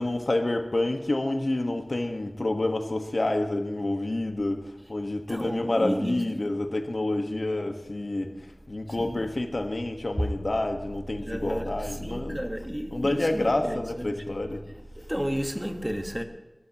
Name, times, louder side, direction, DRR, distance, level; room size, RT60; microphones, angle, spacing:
voice 1, 0.0-12.4 12.9-14.7, left 2 dB, 65° left, 1.4 m, -28 dB
voice 2, 5.3-6.5 8.9-9.3 10.2-10.3 11.2-13.8 14.1-14.4 14.9-16.2, equal, 5° right, 1.4 m, -32 dB
21.0 x 13.0 x 3.0 m
wide cardioid pair, 55°, 0 cm